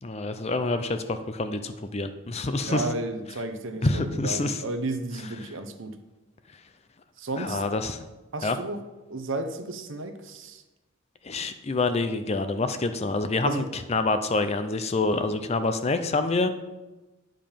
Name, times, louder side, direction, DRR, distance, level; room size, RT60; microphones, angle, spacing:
voice 1, 0.0-2.9 3.8-4.6 7.4-8.0 8.4-8.6 11.2-16.5, left 3 dB, 30° left, 9 dB, 0.5 m, -27 dB
voice 2, 2.6-5.9 7.2-7.6 8.3-8.8 9.1-10.6 13.4-13.7, right 2 dB, 60° right, 8 dB, 0.8 m, -33 dB
9.0 x 5.2 x 5.7 m, 1.1 s
head